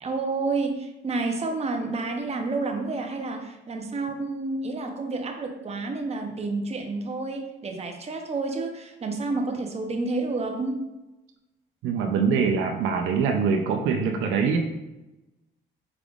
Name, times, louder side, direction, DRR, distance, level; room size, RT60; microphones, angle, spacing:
voice 1, 0.0-10.8, right 3 dB, 30° right, 3 dB, 0.7 m, -29 dB
voice 2, 11.8-14.6, right 5 dB, 85° right, 4 dB, 0.5 m, -23 dB
4.9 x 3.4 x 2.4 m, 1.0 s
cardioid pair, 90°, 20 cm